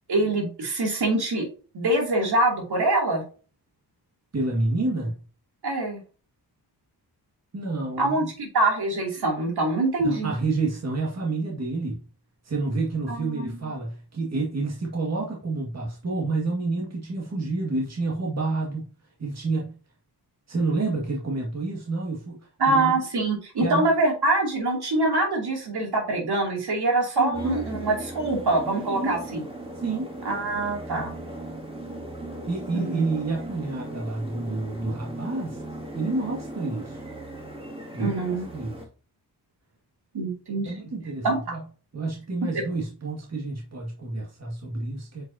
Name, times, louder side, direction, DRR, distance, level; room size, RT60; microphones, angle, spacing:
voice 1, 0.1-1.5 1.7-3.2 5.6-6.0 8.0-10.3 13.1-13.5 22.6-29.4 30.2-31.1 32.7-33.0 38.0-38.4 40.1-40.7 41.2-41.4, right 2 dB, 70° right, 2.9 m, -24 dB
voice 2, 4.3-5.2 7.5-8.3 10.0-12.0 12.4-18.9 19.2-19.8 20.5-22.9 23.6-23.9 27.2-27.7 28.9-29.2 29.7-30.1 32.5-35.6 35.9-37.0 37.9-38.8 40.6-41.6 41.9-45.2, right 3 dB, 40° right, 1.9 m, -29 dB
sound 1, 27.3-38.9, right 1 dB, 15° right, 2.3 m, -38 dB
7.4 x 5.2 x 2.8 m
cardioid pair, 80°, 41 cm